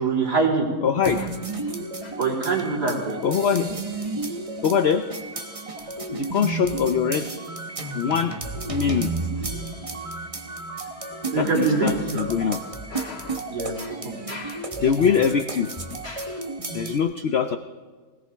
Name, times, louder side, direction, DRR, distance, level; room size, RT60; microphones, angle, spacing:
voice 1, 0.0-0.7 2.2-3.2 11.3-12.2 13.5-13.7 14.0-14.1, right 4 dB, 80° right, -7 dB, 4.1 m, -23 dB
voice 2, 0.8-1.3 2.0-2.2 3.2-3.8 4.6-5.1 6.1-7.3 7.9-8.3 8.7-9.1 10.7-12.6 12.9-13.4 13.8-14.0 14.3-15.7 16.0-16.4 16.7-17.6, left 7 dB, 60° left, 8 dB, 0.7 m, -24 dB
sound 1, 1.0-17.0, right 3 dB, 25° right, 1.2 m, -32 dB
20.5 x 18.5 x 3.5 m, 1.4 s
omnidirectional pair, 1.7 m